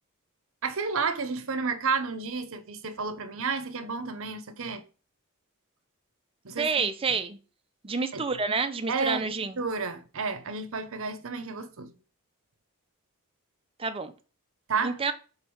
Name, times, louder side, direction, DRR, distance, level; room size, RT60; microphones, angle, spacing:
voice 1, 0.6-4.8 6.4-6.9 8.1-8.2 8.9-11.9 14.7-15.0, right 4 dB, 65° right, 0.9 m, -31 dB
voice 2, 6.6-7.4 7.8-9.6 13.8-14.1 14.8-15.1, right 4 dB, 25° right, 0.6 m, -28 dB
5.3 x 4.1 x 4.6 m
head